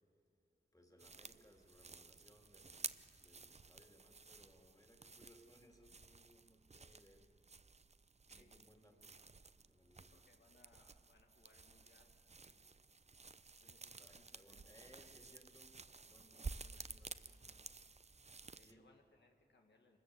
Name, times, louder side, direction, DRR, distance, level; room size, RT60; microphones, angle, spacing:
voice 1, 0.7-7.3 8.3-9.1 9.6-10.1 14.0-17.6 18.6-18.8, equal, 20° left, 2 dB, 2.8 m, -67 dB
sound 1, 1.0-18.7, right 4 dB, 40° right, 0.6 m, -53 dB
voice 2, 8.3-9.0 9.9-12.9 13.6-15.1 16.3-17.1 18.5-20.0, left 2 dB, 80° left, 2 dB, 1.7 m, -72 dB
25.0 x 14.0 x 7.9 m, 2.5 s
wide cardioid pair, 50°, 18 cm